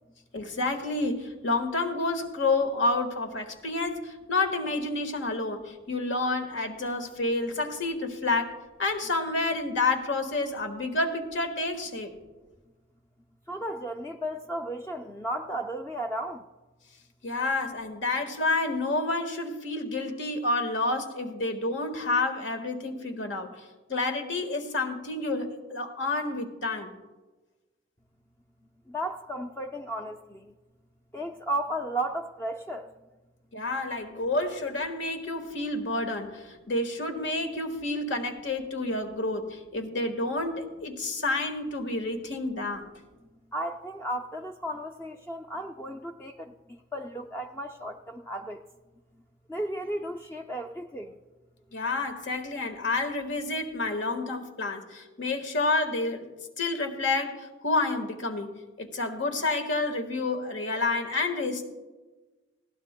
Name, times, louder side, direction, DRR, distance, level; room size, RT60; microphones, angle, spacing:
voice 1, 0.3-12.1 17.2-23.6 23.9-26.9 33.5-42.9 51.7-56.3 56.6-58.5 58.8-61.7, left 2 dB, 80° left, 5 dB, 1.6 m, -29 dB
voice 2, 13.5-16.5 28.9-30.5 31.1-32.9 43.5-46.6 46.9-48.6 49.5-51.2, right 1 dB, 15° left, 4 dB, 0.3 m, -34 dB
18.5 x 16.0 x 2.2 m, 1.2 s
head